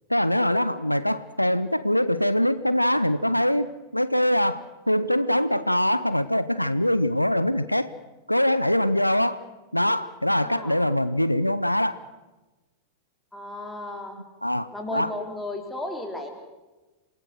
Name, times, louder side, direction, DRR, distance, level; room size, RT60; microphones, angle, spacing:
voice 1, 0.1-3.7 3.9-7.9 8.3-9.4 9.7-12.0 14.4-15.1, left 1 dB, 90° left, 15 dB, 0.7 m, -23 dB
voice 2, 10.4-10.8 13.3-14.2 14.7-16.3, left 2 dB, 5° left, 2 dB, 4.2 m, -34 dB
27.0 x 19.5 x 6.3 m, 1.1 s
figure-of-eight pair, 90°, 0 cm